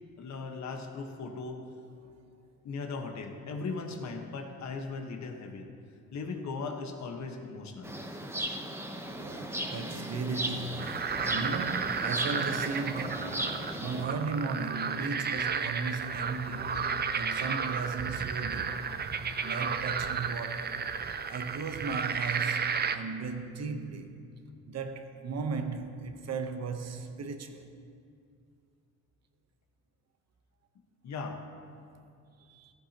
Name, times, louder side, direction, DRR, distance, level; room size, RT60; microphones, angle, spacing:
voice 1, 0.2-1.6 2.6-5.7 6.1-7.9 31.0-31.4, left 4 dB, 65° left, 1.4 m, -38 dB
sound 1, 7.8-14.0, right 1 dB, 10° right, 1.0 m, -36 dB
voice 2, 9.1-16.8 17.1-18.9 19.4-20.8 21.3-24.1 24.7-27.7 32.5-32.7, right 4 dB, 60° right, 1.1 m, -36 dB
sound 2, 10.8-23.0, right 6 dB, 35° right, 0.6 m, -33 dB
14.5 x 13.5 x 3.0 m
cardioid pair, 90°, 30 cm